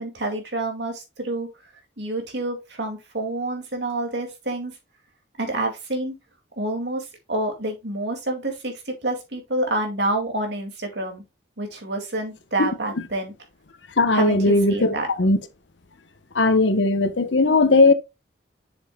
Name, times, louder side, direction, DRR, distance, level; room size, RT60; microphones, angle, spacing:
voice 1, 0.0-1.5 2.0-4.7 5.4-6.1 6.6-11.2 11.6-13.3 14.1-15.1, right 2 dB, 75° right, 2.4 m, -28 dB
voice 2, 14.0-15.4 16.3-17.9, left 3 dB, 85° left, 1.0 m, -18 dB
7.2 x 6.9 x 2.3 m
head